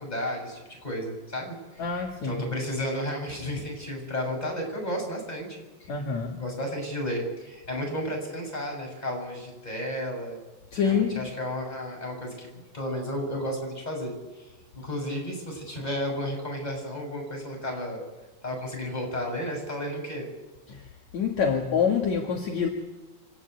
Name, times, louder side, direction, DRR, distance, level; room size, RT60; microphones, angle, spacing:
voice 1, 0.0-5.9 6.4-10.4 10.8-14.5 14.7-18.0 18.4-20.3, equal, 10° left, 1 dB, 6.7 m, -33 dB
voice 2, 1.8-2.4 5.9-6.4 10.7-11.3 20.7-20.8 21.1-22.7, left 6 dB, 50° left, 2 dB, 2.3 m, -26 dB
25.5 x 18.0 x 9.6 m, 1.1 s
omnidirectional pair, 5.5 m